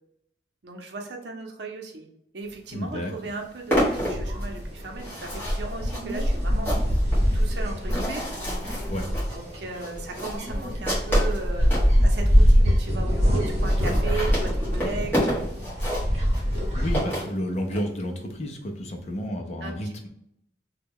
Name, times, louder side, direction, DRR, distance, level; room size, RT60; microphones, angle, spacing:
voice 1, 0.6-2.1 2.3-6.7 7.3-8.2 9.3-11.7 12.0-15.5 19.6-19.8, right 3 dB, 70° right, 2 dB, 0.6 m, -36 dB
voice 2, 2.7-3.1 8.9-9.1 16.7-20.1, equal, 40° left, 2 dB, 0.5 m, -31 dB
sound 1, 2.7-2.8 3.1-11.9 12.5-12.6 12.8-12.9 13.1-13.2 13.5-17.8, equal, 10° left, 1.2 m, -30 dB
sound 2, 3.7-17.0, equal, 35° right, 1.0 m, -24 dB
3.1 x 2.2 x 3.5 m, 0.77 s
head